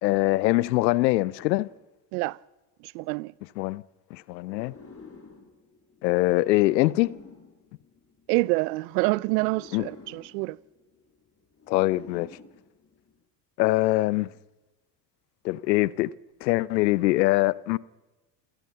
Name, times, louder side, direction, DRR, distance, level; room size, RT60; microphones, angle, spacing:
voice 1, 0.0-1.7 3.6-3.8 4.1-4.7 6.0-7.2 9.7-9.9 11.7-12.3 13.6-14.3 15.4-16.1 16.4-17.8, left 18 dB, 80° left, 0.8 m, -23 dB
voice 2, 2.8-3.3 8.3-10.6, right 23 dB, 70° right, 0.7 m, -27 dB
sound 1, 4.4-8.6 9.3-13.2, left 4 dB, 25° left, 5.6 m, -50 dB
27.0 x 17.5 x 5.7 m
hypercardioid pair, 70°, 50 cm